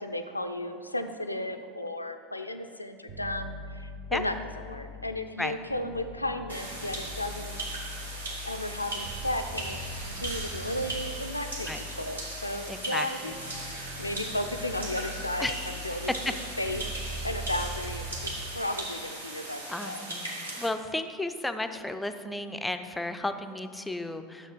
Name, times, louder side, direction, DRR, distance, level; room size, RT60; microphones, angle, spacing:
voice 1, 0.0-4.3 4.7-7.6 8.5-13.3 14.0-16.8 17.2-20.0, left 1 dB, 90° left, 7 dB, 0.4 m, -34 dB
sound 1, 3.1-5.2 5.7-12.8 13.3-18.3, equal, 50° right, 1.2 m, -42 dB
sound 2, 6.5-20.7, right 1 dB, 80° right, 1.3 m, -38 dB
voice 2, 12.7-13.3 15.4-15.6 19.7-24.5, left 2 dB, 5° left, 9 dB, 0.5 m, -34 dB
6.5 x 6.4 x 6.7 m, 2.2 s
figure-of-eight pair, 80°, 0 cm